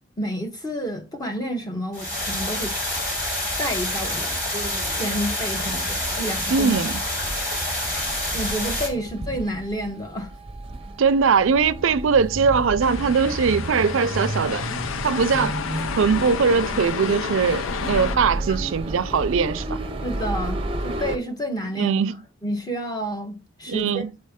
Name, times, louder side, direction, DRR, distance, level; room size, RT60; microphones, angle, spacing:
voice 1, 0.2-2.8 3.6-4.4 4.9-6.7 7.2-7.3 8.3-10.3 11.8-11.9 18.1-18.6 20.0-22.0 22.4-24.1, equal, 20° left, 0.9 m, -30 dB
sound 1, 1.9-8.9, left 1 dB, 45° left, 3.6 m, -27 dB
sound 2, 4.5-21.2, right 1 dB, 25° right, 0.6 m, -33 dB
voice 2, 6.5-6.9 11.0-14.6 15.0-15.6 16.0-19.8 21.8-22.2 23.7-24.1, right 5 dB, 70° right, 0.4 m, -21 dB
sound 3, 12.8-18.2, left 7 dB, 75° left, 0.4 m, -31 dB
7.7 x 4.2 x 3.6 m
head